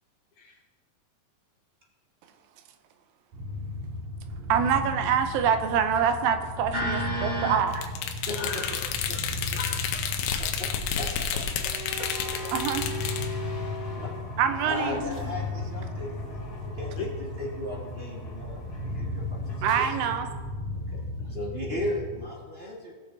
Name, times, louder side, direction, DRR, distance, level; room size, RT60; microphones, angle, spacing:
sound 1, 3.3-22.2, left 2 dB, 55° right, 4.2 m, -36 dB
voice 1, 4.5-7.8 12.5-12.9 14.4-15.0 19.6-20.3, right 8 dB, 80° right, 8 dB, 2.5 m, -25 dB
voice 2, 6.7-7.6 8.3-8.6 10.4-10.7 10.9-11.3 14.0-14.1 14.6-17.1 17.4-19.8 20.2-20.4 20.7-21.0 21.3-22.9, equal, 25° right, -3 dB, 1.4 m, -35 dB
sound 2, 7.7-13.3, left 8 dB, 85° left, 2.7 m, -31 dB
voice 3, 8.3-8.9 9.6-10.5 11.6-12.4 14.7-15.3 17.0-17.1 21.2-21.4, left 5 dB, 70° left, 2 dB, 2.0 m, -38 dB
sound 3, 11.2-19.9, left 1 dB, 45° left, 1.2 m, -41 dB
18.0 x 6.9 x 4.0 m, 1.4 s
omnidirectional pair, 4.1 m